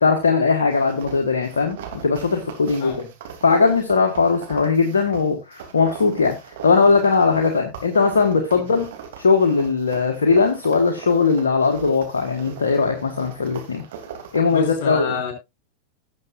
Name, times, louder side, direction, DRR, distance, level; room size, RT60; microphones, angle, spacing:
voice 1, 0.0-2.9 3.4-6.3 6.6-8.9 9.2-13.8 14.3-15.2, left 4 dB, 70° left, 3 dB, 1.5 m, -19 dB
sound 1, 0.7-14.6, right 7 dB, 55° right, 3.0 m, -39 dB
voice 2, 14.5-15.3, left 5 dB, 50° left, 6 dB, 4.3 m, -28 dB
18.0 x 7.4 x 2.6 m, 0.22 s
figure-of-eight pair, 90°, 0 cm